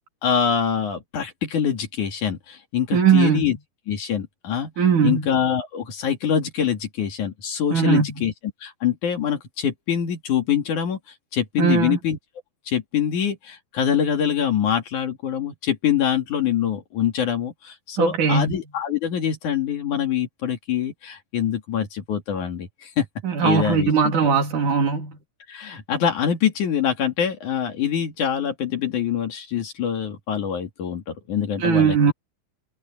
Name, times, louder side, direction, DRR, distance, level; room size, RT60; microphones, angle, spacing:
voice 1, 0.2-3.6 3.9-4.7 5.0-8.3 8.6-11.0 11.3-12.2 12.7-23.1 23.4-24.1 25.5-32.1, left 8 dB, 60° left, 3.6 m, -24 dB
voice 2, 2.9-3.5 4.8-5.3 7.7-8.3 11.6-12.0 18.0-18.5 23.2-25.2 31.6-32.1, right 6 dB, 60° right, 4.3 m, -19 dB
omnidirectional pair, 4.1 m